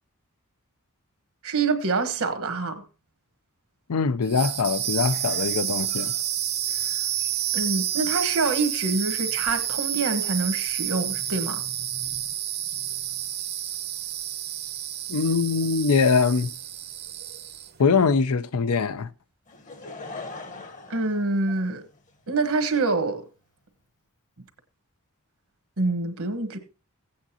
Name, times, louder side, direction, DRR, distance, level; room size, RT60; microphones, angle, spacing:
voice 1, 1.4-2.8 6.7-6.9 7.5-11.6 20.9-21.9 22.3-23.2 25.8-26.6, right 3 dB, 70° right, 1.3 m, -26 dB
voice 2, 3.9-6.1 15.1-16.5 17.8-19.1, left 5 dB, 80° left, 0.6 m, -22 dB
sound 1, 4.2-17.8, right 11 dB, 45° right, 0.8 m, -29 dB
Laughter / Crowd, 19.5-22.1 22.8-22.9, left 3 dB, 35° left, 1.0 m, -40 dB
16.0 x 8.6 x 2.8 m
head